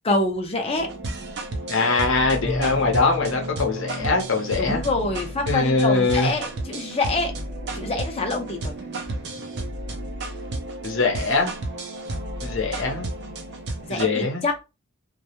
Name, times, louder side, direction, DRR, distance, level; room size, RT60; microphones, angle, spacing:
voice 1, 0.0-0.9 4.6-7.3 7.7-8.7 13.8-14.5, left 2 dB, 30° left, 0.6 m, -26 dB
sound 1, 0.8-14.1, right 1 dB, 55° right, 0.5 m, -32 dB
voice 2, 1.7-4.8 5.5-6.3 10.8-11.5 12.4-13.1 13.9-14.4, left 3 dB, 60° left, 0.7 m, -22 dB
sound 2, 2.4-5.9, equal, 10° right, 0.8 m, -34 dB
2.2 x 2.0 x 2.8 m
head